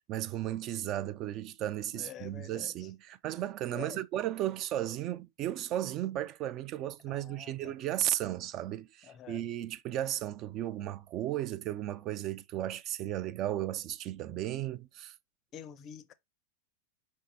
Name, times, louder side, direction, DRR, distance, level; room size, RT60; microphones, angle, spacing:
voice 1, 0.0-15.1, right 13 dB, 35° right, 0.3 m, -35 dB
voice 2, 1.9-2.9 3.7-4.0 7.1-7.7 9.0-9.4 15.5-16.1, left 8 dB, 30° left, 0.5 m, -47 dB
5.5 x 3.6 x 2.7 m
figure-of-eight pair, 90°, 0 cm